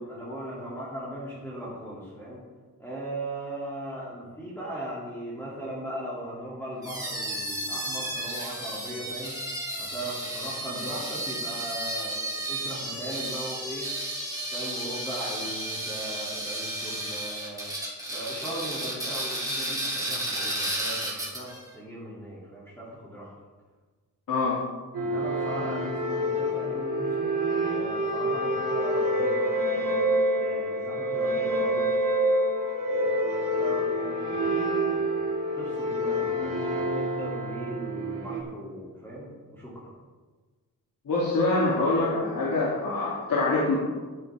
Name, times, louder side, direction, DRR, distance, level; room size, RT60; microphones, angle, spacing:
voice 1, 0.1-2.4 2.8-13.9 14.5-17.7 18.1-23.3 25.0-27.4 27.7-29.5 29.7-31.9 32.9-35.1 35.5-39.9, right 1 dB, 5° left, -8 dB, 2.5 m, -38 dB
sound 1, 6.8-21.6, right 1 dB, 10° right, 2.5 m, -33 dB
voice 2, 24.3-24.6 41.1-43.8, left 2 dB, 70° left, -6 dB, 2.6 m, -25 dB
sound 2, 24.9-38.4, equal, 65° right, 2.5 m, -27 dB
13.5 x 11.0 x 3.4 m, 1.3 s
wide cardioid pair, 175°, 35 cm